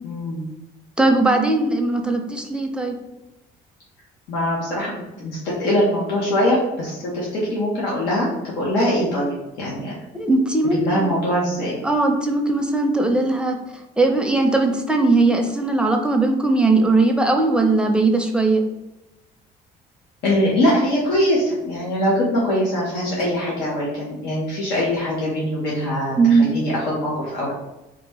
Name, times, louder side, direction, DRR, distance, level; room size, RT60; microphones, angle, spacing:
voice 1, 0.0-0.4 4.3-4.9 5.2-9.9 10.8-11.8 20.2-27.5, equal, 85° left, -6 dB, 1.2 m, -22 dB
voice 2, 1.0-3.0 10.1-11.1 11.8-13.6 14.0-18.6 26.2-26.5, right 3 dB, 5° right, 3 dB, 0.6 m, -19 dB
3.9 x 2.4 x 4.6 m, 0.98 s
cardioid pair, 110°, 17 cm